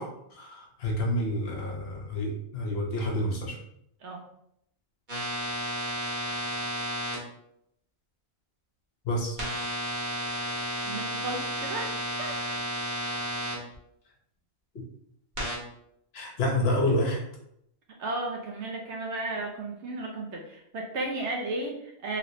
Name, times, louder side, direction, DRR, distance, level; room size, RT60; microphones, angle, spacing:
voice 1, 0.0-3.6 9.0-9.4 14.7-14.8 16.1-17.2, left 1 dB, 55° left, -1 dB, 0.9 m, -29 dB
sound 1, 5.1-7.2 9.4-13.5 15.4-15.6, equal, 40° right, 1.1 m, -32 dB
voice 2, 10.9-12.4 18.0-22.2, right 2 dB, 65° right, 0 dB, 0.8 m, -34 dB
3.0 x 2.9 x 2.6 m, 0.75 s
omnidirectional pair, 1.4 m